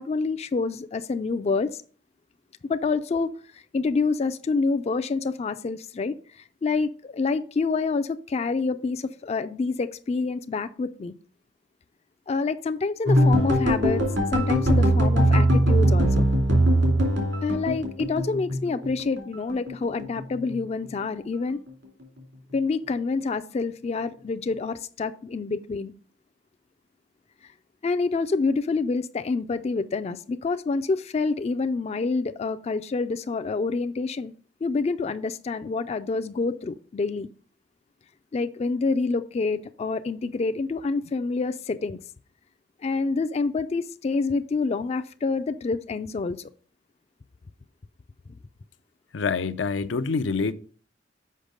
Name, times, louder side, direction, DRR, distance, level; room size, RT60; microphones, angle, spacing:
voice 1, 0.0-1.8 2.7-6.2 6.6-11.1 12.3-14.0 14.3-16.2 17.4-21.6 22.5-25.9 27.8-34.3 34.6-37.3 38.3-42.0 42.8-46.5, left 4 dB, 35° left, 0.3 m, -27 dB
sound 1, 13.1-19.2 19.5-20.5 20.8-21.2 21.5-21.7, right 1 dB, 80° right, 2.6 m, -21 dB
voice 2, 49.1-50.5, left 4 dB, 85° left, 0.5 m, -26 dB
6.5 x 5.4 x 5.1 m
head